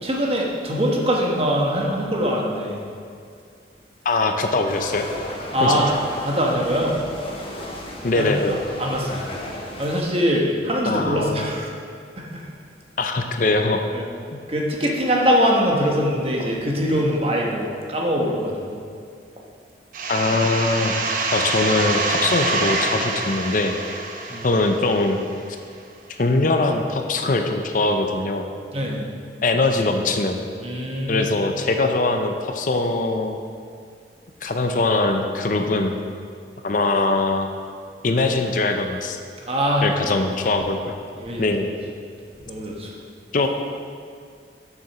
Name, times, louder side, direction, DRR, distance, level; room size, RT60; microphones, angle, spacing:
voice 1, 0.0-2.8 5.5-5.9 6.2-7.0 8.2-8.3 8.8-9.3 9.8-11.7 12.2-12.5 13.9-14.0 14.5-18.8 24.3-24.6 28.7-29.1 30.6-31.3 39.5-39.9 41.2-41.5 42.5-42.9, equal, 35° right, -1 dB, 1.2 m, -22 dB
voice 2, 4.0-5.1 5.6-5.8 8.0-8.6 10.9-11.5 13.0-13.8 14.3-14.4 20.1-20.9 21.3-23.7 24.4-25.2 26.2-28.5 29.4-30.4 31.1-33.4 34.4-36.0 36.6-37.5 38.0-39.2 39.8-41.0 41.4-41.7 43.3-43.5, left 2 dB, 45° left, 5 dB, 0.6 m, -22 dB
sound 1, 4.7-10.0, left 1 dB, 30° left, 1.1 m, -35 dB
sound 2, 19.9-25.4, right 3 dB, 50° right, 0.8 m, -26 dB
7.1 x 6.6 x 5.9 m, 2.3 s
head